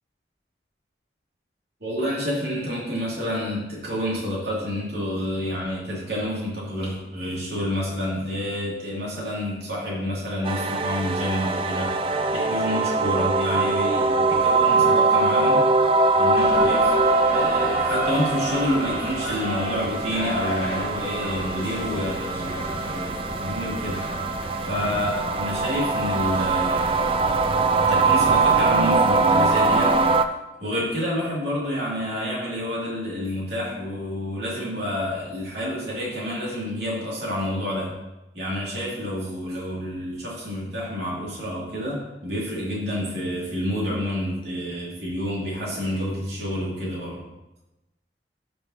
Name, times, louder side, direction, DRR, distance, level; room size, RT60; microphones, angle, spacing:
voice 1, 1.8-12.0 12.3-15.7 16.1-17.0 17.3-24.1 24.7-27.0 27.8-30.0 30.6-37.9 38.3-47.2, equal, 75° right, -6 dB, 2.7 m, -29 dB
sound 1, 10.4-30.3, right 3 dB, 30° right, 0.3 m, -22 dB
sound 2, 16.3-29.1, equal, 30° left, 1.6 m, -34 dB
12.5 x 5.4 x 2.9 m, 0.99 s
head